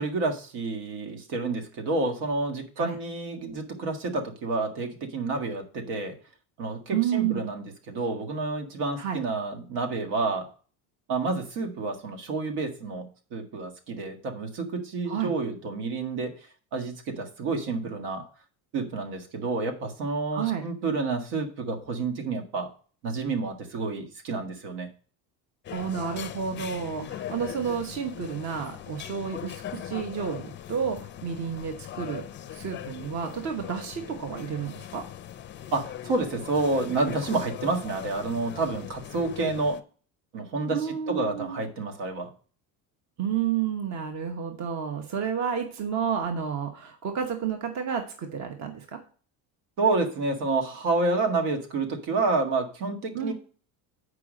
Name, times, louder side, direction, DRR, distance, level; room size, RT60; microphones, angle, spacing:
voice 1, 0.0-6.1 6.6-10.5 11.1-16.3 16.7-18.2 18.7-22.7 23.0-24.9 35.7-39.8 40.3-42.3 49.8-53.3, right 3 dB, 75° right, 5 dB, 1.8 m, -29 dB
voice 2, 6.9-7.4 9.0-9.2 15.1-15.3 20.3-20.7 25.7-32.2 32.5-35.0 40.7-41.6 43.2-49.0 53.1-53.3, right 7 dB, 45° right, 5 dB, 1.1 m, -30 dB
sound 1, 25.6-39.8, left 11 dB, 30° left, 0.5 m, -40 dB
8.2 x 4.9 x 5.1 m, 0.40 s
cardioid pair, 135°, 40 cm